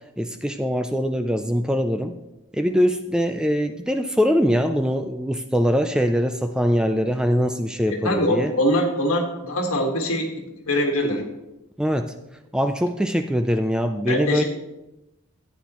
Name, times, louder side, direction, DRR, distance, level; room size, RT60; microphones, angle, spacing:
voice 1, 0.2-2.2 2.5-8.5 11.8-12.1 12.5-14.4, equal, 5° right, 7 dB, 0.3 m, -22 dB
voice 2, 8.0-10.3 10.7-11.2 14.1-14.4, equal, 70° left, 2 dB, 1.6 m, -22 dB
13.0 x 9.2 x 3.0 m, 0.98 s
head